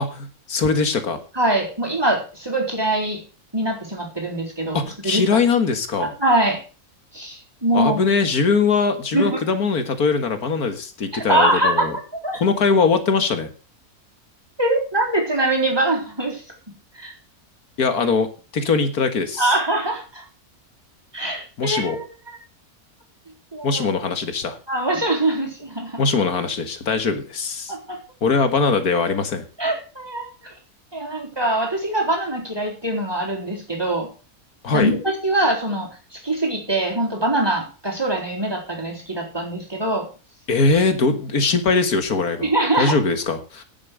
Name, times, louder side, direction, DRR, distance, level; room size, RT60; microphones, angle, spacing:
voice 1, 0.0-1.2 4.7-6.1 7.7-11.9 12.4-13.5 17.8-18.3 18.5-19.5 21.6-22.0 23.6-24.6 26.0-27.7 28.2-29.4 34.6-34.9 40.5-42.5 42.8-43.6, left 4 dB, 80° left, 9 dB, 2.2 m, -21 dB
voice 2, 1.3-3.2 3.5-5.2 6.0-6.6 7.1-8.0 9.1-9.4 11.3-11.9 12.2-12.4 14.6-16.4 16.9-17.1 19.4-20.2 21.1-22.4 23.5-23.8 24.7-26.0 27.7-28.0 29.6-30.5 30.9-34.1 34.7-40.1 42.4-43.0, right 1 dB, 15° right, 0 dB, 4.0 m, -23 dB
11.0 x 8.7 x 6.4 m, 0.35 s
omnidirectional pair, 1.6 m